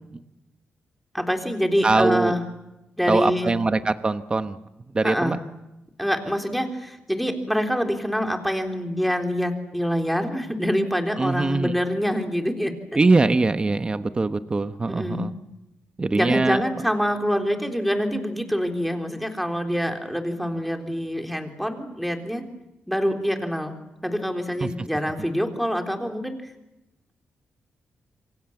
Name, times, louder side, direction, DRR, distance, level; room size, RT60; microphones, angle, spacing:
voice 1, 1.1-2.4 3.0-3.5 5.0-5.3 6.0-13.0 14.9-15.3 16.1-22.4 22.9-23.7 24.0-26.4, equal, ahead, 4 dB, 3.6 m, -25 dB
voice 2, 1.8-2.3 3.1-4.6 4.9-5.4 11.2-11.7 13.0-15.3 16.0-16.6 24.6-24.7, right 3 dB, 25° right, 10 dB, 1.1 m, -22 dB
28.0 x 24.0 x 7.2 m, 0.95 s
cardioid pair, 105°, 4 cm